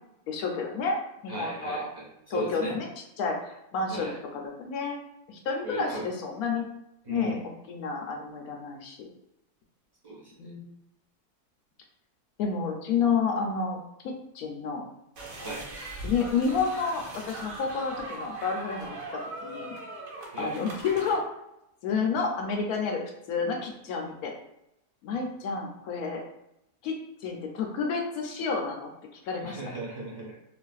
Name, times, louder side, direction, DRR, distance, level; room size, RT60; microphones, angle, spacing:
voice 1, 0.3-1.9 2.3-2.9 3.2-5.0 5.3-6.7 7.1-7.4 7.7-9.1 10.4-10.7 12.4-14.9 16.0-18.9 19.1-19.8 20.4-21.3 21.8-24.3 25.0-26.2 26.8-26.9 27.2-29.6, left 5 dB, 75° left, 2 dB, 1.0 m, -30 dB
voice 2, 1.3-2.7 3.9-4.2 5.6-6.0 7.0-7.5 10.0-10.5 15.4-15.7 20.3-20.5 29.4-30.4, right 2 dB, 15° right, -5 dB, 1.0 m, -36 dB
sound 1, 15.2-21.1, right 2 dB, 65° right, 1.2 m, -40 dB
3.9 x 2.4 x 2.3 m, 0.85 s
omnidirectional pair, 1.6 m